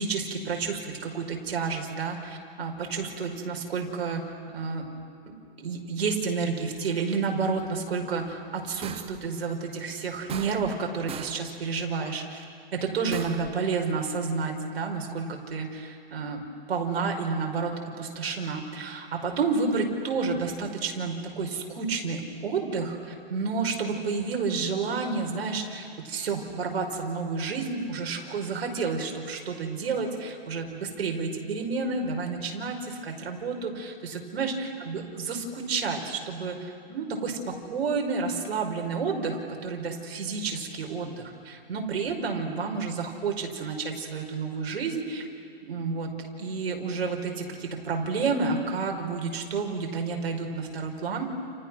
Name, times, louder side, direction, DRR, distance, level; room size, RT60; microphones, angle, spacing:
voice 1, 0.0-4.9 5.3-12.4 12.7-45.3 45.6-51.3, right 4 dB, 80° right, 3 dB, 5.3 m, -30 dB
sound 1, 8.8-9.3 10.3-10.8 11.1-11.5 13.1-13.6, right 10 dB, 20° right, 0.8 m, -40 dB
30.0 x 30.0 x 6.3 m, 2.3 s
hypercardioid pair, 135°, 31 cm